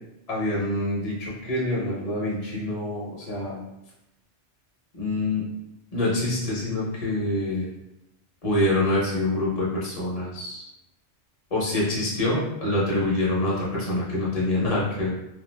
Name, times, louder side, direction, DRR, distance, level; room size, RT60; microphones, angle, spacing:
voice 1, 0.3-3.6 5.0-5.4 5.9-7.7 8.4-10.6 11.5-15.1, left 1 dB, 40° left, -5 dB, 0.7 m, -26 dB
2.5 x 2.2 x 3.2 m, 0.89 s
omnidirectional pair, 1.2 m